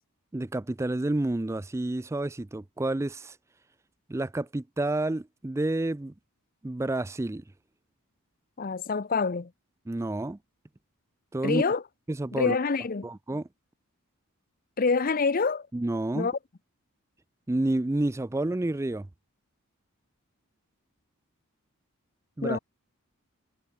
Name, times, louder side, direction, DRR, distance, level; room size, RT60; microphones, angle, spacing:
voice 1, 0.3-3.4 4.1-6.1 6.6-7.4 9.9-10.4 11.3-11.6 12.1-12.6 13.0-13.5 15.7-16.3 17.5-19.1 22.4-22.6, right 2 dB, 10° right, 0.3 m, -29 dB
voice 2, 8.6-9.5 11.4-11.8 12.3-13.1 14.8-15.7 16.1-16.4 22.4-22.6, left 4 dB, 40° left, 0.6 m, -26 dB
head